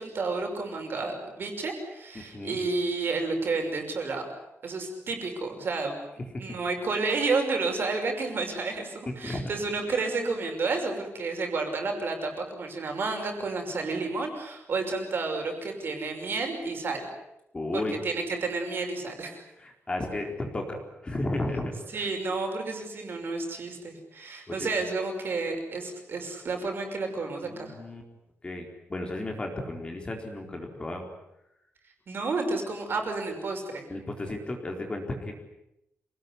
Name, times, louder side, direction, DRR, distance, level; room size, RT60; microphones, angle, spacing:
voice 1, 0.0-4.3 4.6-6.0 6.4-17.1 17.7-19.4 21.9-27.8 32.1-33.9, right 3 dB, 50° right, 4 dB, 5.9 m, -31 dB
voice 2, 2.1-2.6 6.3-6.4 9.2-9.5 17.5-17.9 19.6-22.1 24.5-24.7 27.5-28.0 28.4-31.0 33.9-35.3, left 2 dB, 20° left, 2 dB, 4.1 m, -34 dB
27.0 x 19.0 x 9.8 m, 0.85 s
wide cardioid pair, 165°, 5 cm